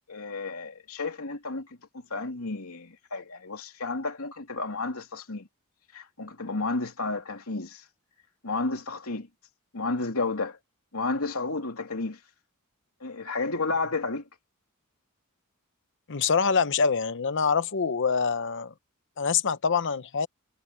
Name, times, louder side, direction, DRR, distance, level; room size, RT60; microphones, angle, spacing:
voice 1, 0.1-1.7 2.1-5.5 5.9-7.8 8.4-9.3 9.7-10.6 10.9-12.2 13.0-14.2, left 3 dB, 75° left, 3.2 m, -31 dB
voice 2, 16.1-18.7 19.2-20.3, left 5 dB, 60° left, 0.8 m, -25 dB
head